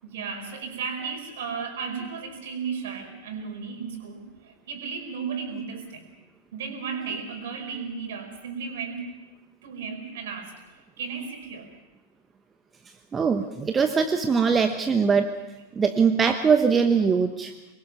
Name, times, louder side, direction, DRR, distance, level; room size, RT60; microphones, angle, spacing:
voice 1, 0.0-6.1 6.5-9.1 9.6-10.6 11.0-11.7, right 5 dB, 55° right, 5 dB, 4.6 m, -34 dB
voice 2, 13.1-15.3 15.7-17.5, right 5 dB, 20° right, 7 dB, 1.0 m, -22 dB
25.0 x 21.5 x 5.9 m, 1.1 s
figure-of-eight pair, 90°, 0 cm